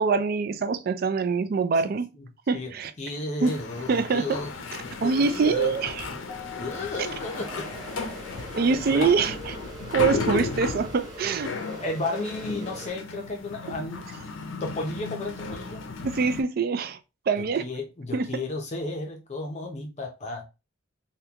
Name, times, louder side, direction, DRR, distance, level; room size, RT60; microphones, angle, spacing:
voice 1, 0.0-2.1 2.5-2.9 3.4-3.6 3.9-4.4 5.0-6.1 8.5-9.6 9.9-11.7 16.0-17.0 17.3-17.7 18.1-18.4, right 5 dB, 50° right, 0.3 m, -24 dB
voice 2, 3.0-4.5 4.8-5.7 6.6-7.7 8.4-9.1 11.7-14.1 14.6-15.8 17.4-20.4, left 2 dB, 35° left, 0.5 m, -33 dB
sound 1, 3.4-16.4, left 4 dB, 90° left, 0.5 m, -35 dB
Keyboard (musical), 6.3-8.5, left 12 dB, 15° left, 1.1 m, -46 dB
sound 2, 7.2-12.9, right 1 dB, 20° right, 1.3 m, -43 dB
3.5 x 2.2 x 2.8 m
head